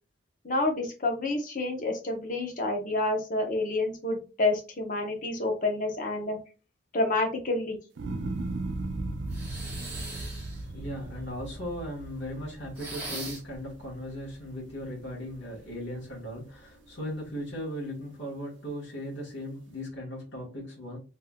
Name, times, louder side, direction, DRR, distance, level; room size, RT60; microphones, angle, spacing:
voice 1, 0.4-6.4 6.9-7.8, left 2 dB, 45° left, 2 dB, 0.8 m, -28 dB
sound 1, 8.0-14.3 14.7-15.3, right 2 dB, 80° right, 0.5 m, -37 dB
sound 2, 9.3-10.7 12.7-13.6, right 2 dB, 10° right, 1.1 m, -40 dB
voice 2, 10.6-21.0, equal, 80° left, -5 dB, 1.4 m, -37 dB
3.3 x 2.8 x 2.3 m, 0.32 s
head